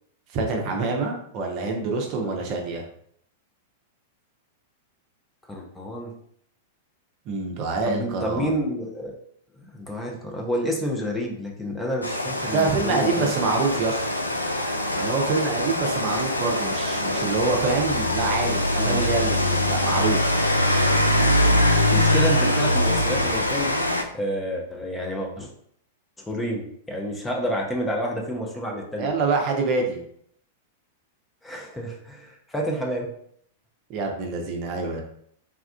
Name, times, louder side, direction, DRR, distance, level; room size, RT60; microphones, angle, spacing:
voice 1, 0.3-2.8 7.3-8.5 12.5-14.0 15.0-20.2 29.0-30.0 33.9-35.0, right 4 dB, 40° right, 1 dB, 0.6 m, -26 dB
voice 2, 5.5-6.2 7.8-9.2 9.6-13.3 18.8-19.0 21.9-23.8 24.1-25.5 26.2-29.1 31.4-33.1, equal, 10° left, 0 dB, 0.5 m, -29 dB
Rain, 12.0-24.0, left 1 dB, 90° left, 0.3 m, -23 dB
3.5 x 2.3 x 2.3 m, 0.66 s
figure-of-eight pair, 95°, 0 cm